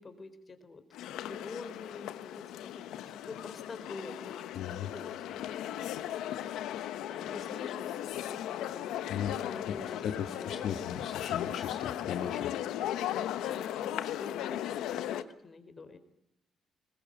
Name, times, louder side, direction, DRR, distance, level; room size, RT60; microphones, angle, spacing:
voice 1, 0.0-5.9 6.3-10.0 10.4-10.9 13.3-16.0, left 4 dB, 35° left, 10 dB, 3.9 m, -47 dB
sound 1, 0.9-15.2, left 12 dB, 90° left, 1.1 m, -37 dB
voice 2, 4.5-4.9 9.1-9.4 10.0-12.5, left 8 dB, 75° left, 5 dB, 1.7 m, -37 dB
22.0 x 20.5 x 8.9 m, 0.78 s
cardioid pair, 90°, 0 cm